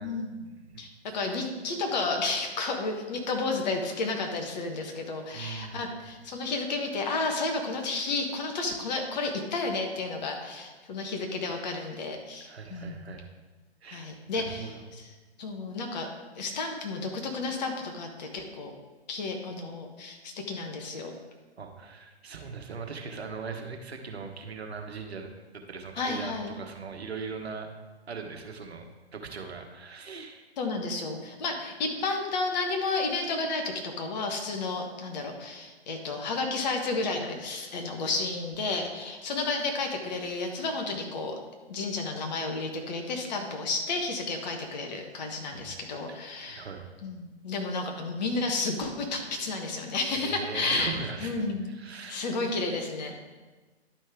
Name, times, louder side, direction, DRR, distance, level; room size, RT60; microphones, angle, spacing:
voice 1, 0.0-0.5 0.8-13.1 13.9-15.1 15.4-16.1 16.3-18.7 19.1-21.1 26.0-26.5 30.6-41.3 41.7-46.7 47.0-50.9 51.2-51.7 52.1-53.2, left 3 dB, 40° left, 3 dB, 1.4 m, -32 dB
voice 2, 5.3-5.9 12.4-13.3 13.8-14.8 21.6-25.3 25.7-27.7 28.1-28.8 29.1-30.5 45.5-45.7 46.1-46.9 50.1-52.2, right 5 dB, 70° right, 4 dB, 1.3 m, -40 dB
11.0 x 5.4 x 3.7 m, 1.3 s
figure-of-eight pair, 130°, 33 cm